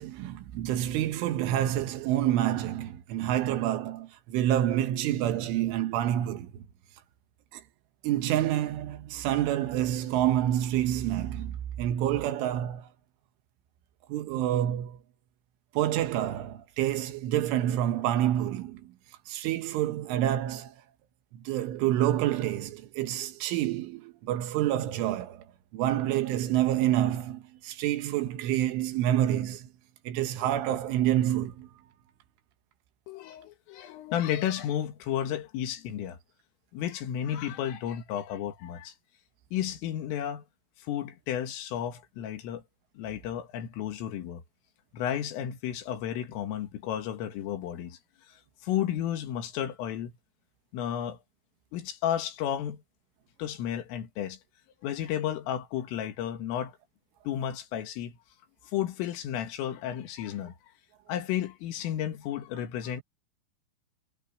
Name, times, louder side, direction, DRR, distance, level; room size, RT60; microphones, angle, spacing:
voice 1, 0.0-6.6 7.5-7.6 8.0-12.9 14.1-15.0 15.7-18.9 19.3-20.8 21.3-25.4 25.7-29.7 30.1-31.7, right 12 dB, 75° right, 3.6 m, -28 dB
voice 2, 33.1-36.2 36.7-38.9 39.5-40.4 40.8-42.6 43.0-44.4 44.9-48.0 48.3-50.1 50.7-51.2 51.7-52.8 53.4-54.4 54.8-56.8 57.3-58.2 58.6-60.5 61.1-63.0, left 10 dB, 75° left, 4.5 m, -32 dB
omnidirectional pair, 5.9 m